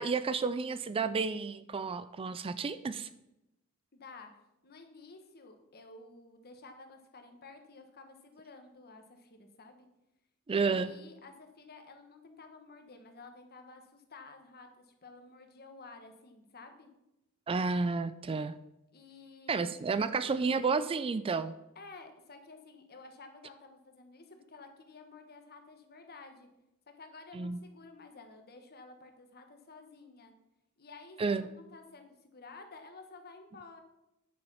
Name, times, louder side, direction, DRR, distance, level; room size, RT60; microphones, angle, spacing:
voice 1, 0.0-3.1 10.5-10.9 17.5-18.5 19.5-21.5 27.3-27.6 31.2-31.5, right 4 dB, 25° right, 13 dB, 0.3 m, -31 dB
voice 2, 3.9-4.3 4.6-9.9 10.5-16.9 18.9-19.7 21.7-26.5 27.0-30.3 30.8-33.8, left 3 dB, 45° left, 6 dB, 1.4 m, -52 dB
9.8 x 6.9 x 5.6 m, 0.90 s
head